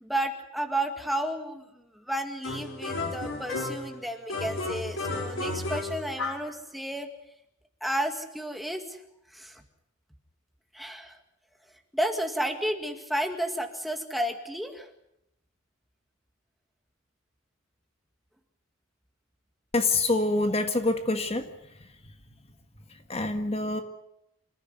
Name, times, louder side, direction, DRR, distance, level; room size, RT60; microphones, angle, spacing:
voice 1, 0.0-7.1 7.8-9.0 9.3-9.6 10.7-11.2 11.9-14.9, right 1 dB, ahead, 5 dB, 2.0 m, -32 dB
sound 1, 2.4-3.9 4.3-6.5, left 2 dB, 85° left, 4.4 m, -33 dB
voice 2, 19.7-21.4 23.1-23.8, left 2 dB, 30° left, 7 dB, 1.6 m, -26 dB
27.5 x 15.0 x 9.4 m, 0.81 s
head